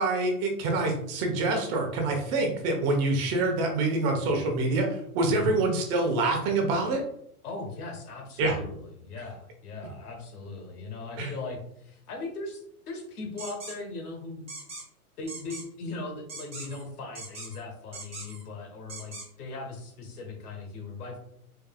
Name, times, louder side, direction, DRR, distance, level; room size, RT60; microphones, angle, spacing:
voice 1, 0.0-7.0 8.4-8.6 11.2-11.3, right 2 dB, 40° right, 2 dB, 1.1 m, -26 dB
voice 2, 5.2-5.6 7.4-14.5 15.2-21.2, left 3 dB, 80° left, 3 dB, 1.4 m, -39 dB
sound 1, 13.4-13.7 14.5-14.8 15.3-15.6 16.3-16.8 17.1-17.6 17.9-18.4 18.9-19.3, right 3 dB, 15° right, 1.6 m, -40 dB
4.6 x 3.3 x 2.3 m, 0.71 s
hypercardioid pair, 125°, 45 cm